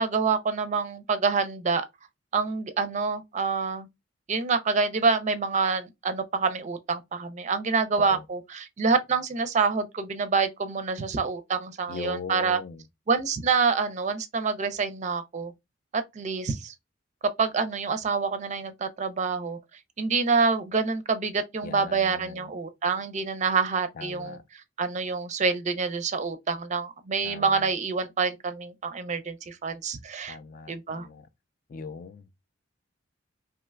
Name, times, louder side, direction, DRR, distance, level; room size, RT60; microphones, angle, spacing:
voice 1, 0.0-1.9 2.3-3.9 4.3-12.6 13.1-15.5 15.9-16.7 17.4-19.6 20.0-30.4 30.7-31.1, right 5 dB, 40° right, 0.5 m, -27 dB
voice 2, 11.9-12.8 21.6-22.5 24.0-24.4 27.2-27.7 30.3-31.3 31.7-32.4, left 5 dB, 45° left, 0.4 m, -40 dB
2.8 x 2.3 x 3.3 m
head